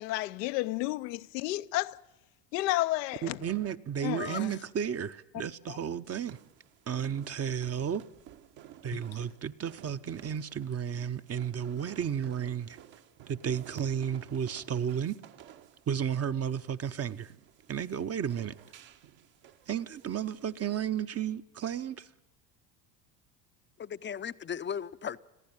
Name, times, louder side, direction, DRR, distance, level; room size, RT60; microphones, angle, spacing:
voice 1, 0.0-2.0 2.5-3.4 4.0-4.5 5.7-5.8, left 18 dB, 75° left, 0.7 m, -31 dB
voice 2, 3.2-6.4 6.9-8.0 8.8-12.8 13.3-15.1 15.9-17.3 17.7-18.5 19.7-22.1, right 8 dB, 30° right, 0.9 m, -33 dB
sound 1, 6.0-20.7, right 11 dB, 60° right, 1.5 m, -55 dB
voice 3, 23.8-25.2, left 8 dB, 25° left, 0.7 m, -36 dB
22.0 x 15.0 x 9.0 m
hypercardioid pair, 80°, 49 cm